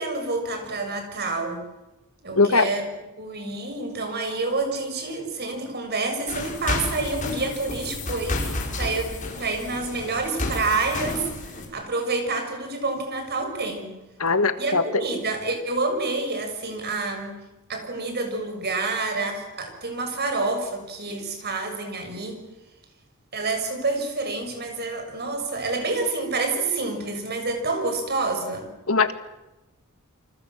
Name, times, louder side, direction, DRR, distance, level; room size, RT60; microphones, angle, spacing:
voice 1, 0.0-1.6 2.2-2.8 3.2-13.9 14.6-17.4 17.7-22.4 23.3-28.7, right 3 dB, 50° right, 5 dB, 6.5 m, -28 dB
voice 2, 2.3-2.7 14.2-14.8 28.9-29.1, left 3 dB, 85° left, 10 dB, 1.9 m, -20 dB
sound 1, 6.3-11.7, left 2 dB, 40° left, 5.9 m, -31 dB
28.5 x 25.5 x 7.4 m, 0.99 s
head